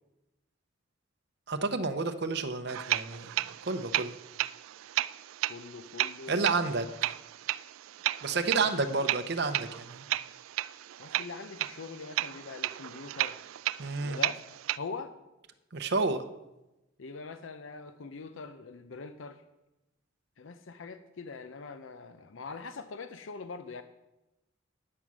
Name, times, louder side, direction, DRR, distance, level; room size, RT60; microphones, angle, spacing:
voice 1, 1.5-3.4 3.6-4.2 6.3-6.9 8.2-10.0 13.8-14.2 15.7-16.2, right 3 dB, 55° right, 7 dB, 0.7 m, -30 dB
sound 1, 2.7-14.8, right 14 dB, 90° right, 0.3 m, -34 dB
voice 2, 5.5-6.6 8.4-8.8 11.0-13.4 14.0-14.4 14.8-15.1 17.0-19.4 20.4-23.8, left 4 dB, 75° left, 10 dB, 0.6 m, -43 dB
9.4 x 8.7 x 6.1 m, 0.96 s
head